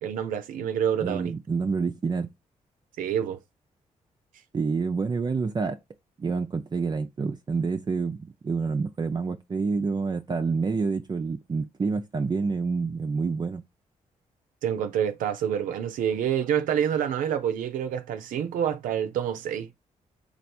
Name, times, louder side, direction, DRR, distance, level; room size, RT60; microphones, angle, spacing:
voice 1, 0.0-1.3 3.0-3.4 14.6-19.7, right 9 dB, 85° right, 0.5 m, -27 dB
voice 2, 1.0-2.3 4.5-5.8 6.2-13.6, right 4 dB, 30° right, 0.4 m, -28 dB
3.3 x 2.4 x 4.2 m
cardioid pair, 65°, 14 cm